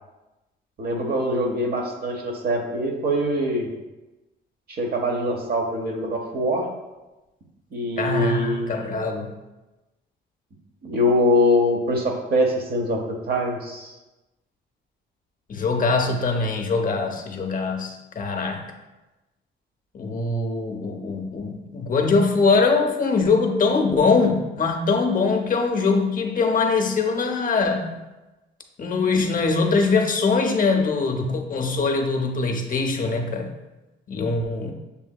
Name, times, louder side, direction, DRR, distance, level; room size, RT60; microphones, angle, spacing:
voice 1, 0.8-3.7 4.7-6.7 7.7-9.0 10.8-13.0 13.3-13.9, equal, 50° right, 1 dB, 0.9 m, -23 dB
voice 2, 8.0-9.3 15.5-18.6 19.9-27.9 28.8-33.5 34.1-34.7, left 4 dB, 45° left, 3 dB, 0.6 m, -22 dB
6.8 x 2.6 x 2.3 m, 1.1 s
cardioid pair, 90°, 20 cm